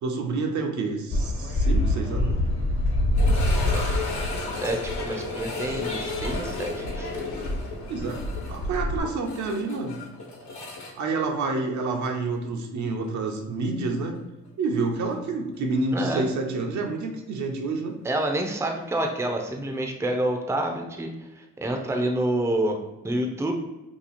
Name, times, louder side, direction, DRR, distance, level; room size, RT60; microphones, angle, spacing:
voice 1, 0.0-2.4 7.9-8.2 8.5-10.0 11.0-14.1 14.6-18.0, right 3 dB, 70° right, 3 dB, 0.7 m, -28 dB
sound 1, 1.1-9.0, left 1 dB, 45° left, 1.0 m, -27 dB
sound 2, 3.1-12.1 12.3-12.4 13.0-13.1 15.7-15.8, left 3 dB, 70° left, 1.1 m, -34 dB
voice 2, 4.6-7.1 15.9-16.3 18.0-21.1 21.4-22.8 23.0-23.5, right 1 dB, 10° right, 2 dB, 0.5 m, -28 dB
2.9 x 2.4 x 4.1 m, 1.0 s
cardioid pair, 90°, 30 cm